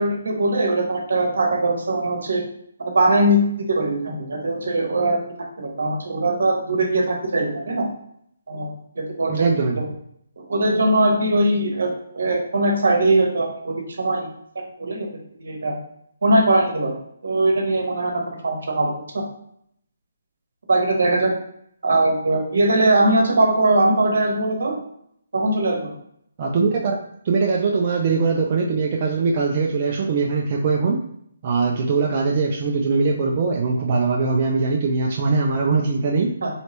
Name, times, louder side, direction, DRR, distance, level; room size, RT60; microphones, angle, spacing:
voice 1, 0.0-2.4 2.8-5.2 5.6-7.8 8.5-9.9 10.4-14.3 14.8-15.1 15.4-15.7 16.2-16.9 17.2-19.2 20.7-21.3 21.8-24.7 25.3-25.9 36.4-36.5, right 1 dB, 70° right, 1 dB, 1.0 m, -21 dB
voice 2, 9.3-9.8 26.4-27.0 27.2-31.0 31.4-36.3, right 4 dB, 40° right, -1 dB, 0.4 m, -21 dB
3.1 x 2.8 x 3.0 m, 0.70 s
figure-of-eight pair, 150°, 0 cm